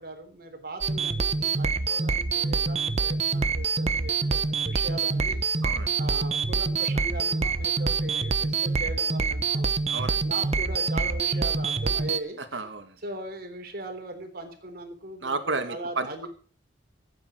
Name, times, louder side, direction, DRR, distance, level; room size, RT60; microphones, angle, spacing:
voice 1, 0.0-5.4 5.9-9.7 10.1-12.4 13.0-16.3, right 2 dB, 55° right, 5 dB, 3.6 m, -39 dB
sound 1, 0.8-12.2, right 4 dB, 35° right, 0.9 m, -26 dB
voice 2, 5.6-5.9 9.9-10.2 12.4-13.0 15.2-16.3, right 3 dB, 80° right, 7 dB, 2.2 m, -32 dB
15.5 x 9.0 x 6.2 m, 0.43 s
head